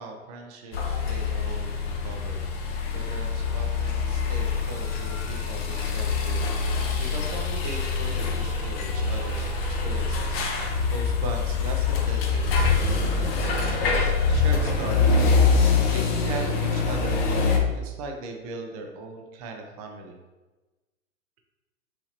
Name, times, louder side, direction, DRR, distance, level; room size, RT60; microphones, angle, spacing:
voice 1, 0.0-15.2 15.4-20.2, right 2 dB, 30° right, 3 dB, 0.6 m, -39 dB
sound 1, 0.7-17.6, left 4 dB, 50° left, 0.9 m, -25 dB
5.8 x 2.8 x 2.9 m, 1.2 s
hypercardioid pair, 140°, 39 cm